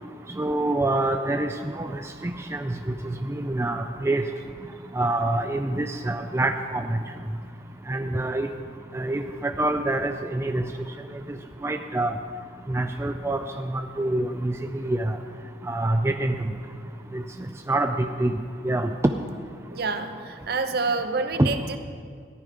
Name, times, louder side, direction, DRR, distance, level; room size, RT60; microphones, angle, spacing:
voice 1, 0.4-1.9 2.2-2.9 3.4-4.2 5.0-7.0 7.9-8.5 8.9-10.6 11.6-12.1 12.7-15.2 15.7-16.3 17.1-17.2 17.7-18.3 18.6-18.9 21.4-21.5, right 2 dB, 15° right, 6 dB, 0.4 m, -26 dB
voice 2, 19.7-21.8, right 3 dB, 55° right, 8 dB, 0.8 m, -28 dB
14.5 x 10.5 x 5.0 m, 2.2 s
head